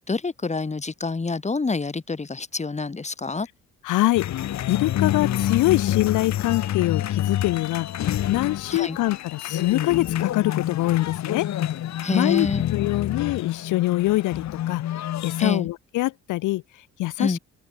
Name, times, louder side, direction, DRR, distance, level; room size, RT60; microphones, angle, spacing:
voice 1, 0.0-3.5 8.7-9.0 12.0-12.6 15.4-15.7 17.2-17.4, left 4 dB, 25° left, 2.4 m, -27 dB
voice 2, 3.8-4.3 4.7-11.5 12.1-17.4, left 17 dB, 85° left, 0.7 m, -24 dB
sound 1, 4.1-15.4, left 12 dB, 65° left, 1.2 m, -28 dB
open air
cardioid pair, 90°, 30 cm